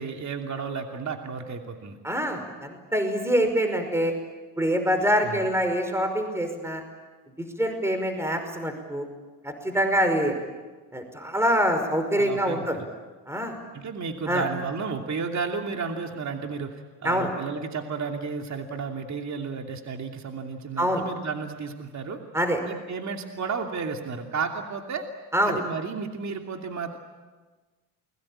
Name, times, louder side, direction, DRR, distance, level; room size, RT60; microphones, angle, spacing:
voice 1, 0.0-2.0 5.2-5.5 12.2-12.6 13.7-16.8 17.0-22.2 22.7-25.0 25.4-27.0, right 5 dB, 40° right, 3 dB, 2.8 m, -32 dB
voice 2, 2.0-4.1 4.6-6.8 7.4-9.1 9.4-10.3 10.9-12.8 13.3-13.6 14.3-14.4 17.0-17.3 20.8-21.0 22.3-22.6 25.3-25.6, equal, 5° right, 6 dB, 5.2 m, -25 dB
29.0 x 22.5 x 8.8 m, 1.3 s
supercardioid pair, 75°, 41 cm